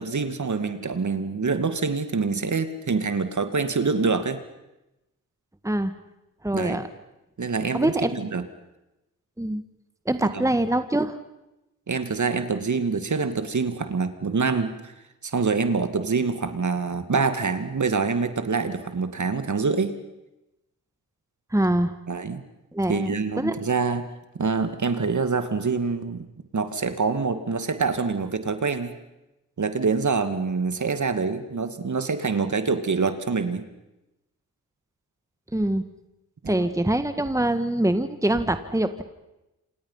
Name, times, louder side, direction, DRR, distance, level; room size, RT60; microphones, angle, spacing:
voice 1, 0.0-4.4 6.5-6.8 7.4-8.4 10.2-10.4 11.9-14.9 15.2-19.9 22.1-22.4 22.9-24.1 24.4-26.3 26.5-28.9 29.6-33.6 36.4-36.7, right 4 dB, 45° right, 9 dB, 2.4 m, -25 dB
voice 2, 6.4-6.9 7.7-8.1 9.4-9.6 10.1-11.2 21.5-21.9 22.7-23.5 35.5-35.8 36.5-39.0, right 1 dB, 10° right, 9 dB, 1.9 m, -24 dB
28.0 x 27.0 x 5.8 m, 0.94 s
supercardioid pair, 40°, 40 cm